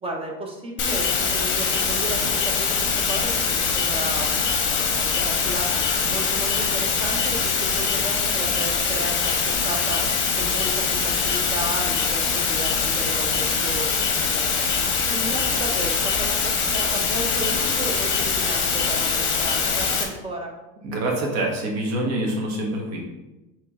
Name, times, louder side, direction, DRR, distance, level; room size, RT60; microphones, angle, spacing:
voice 1, 0.0-5.7 6.1-10.1 10.4-14.7 15.1-20.5, right 1 dB, 15° right, 0 dB, 0.6 m, -34 dB
sound 1, 0.8-20.0, left 5 dB, 30° left, 0.9 m, -23 dB
voice 2, 20.8-23.1, right 1 dB, 40° right, 0 dB, 1.2 m, -26 dB
4.4 x 3.1 x 3.5 m, 1.0 s
supercardioid pair, 130°, 38 cm